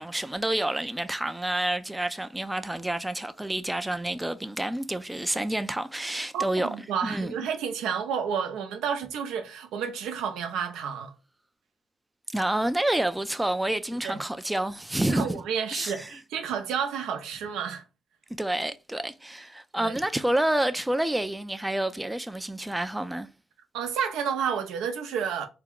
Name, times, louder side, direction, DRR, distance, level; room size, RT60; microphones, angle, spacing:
voice 1, 0.0-6.7 7.0-7.3 12.3-15.4 15.7-16.1 18.4-23.3, right 1 dB, 10° right, 0.3 m, -28 dB
voice 2, 6.3-11.1 14.0-14.2 15.1-17.8 19.8-20.0 23.7-25.5, right 7 dB, 90° right, 0.6 m, -30 dB
3.4 x 2.2 x 3.6 m
cardioid pair, 90°, 0 cm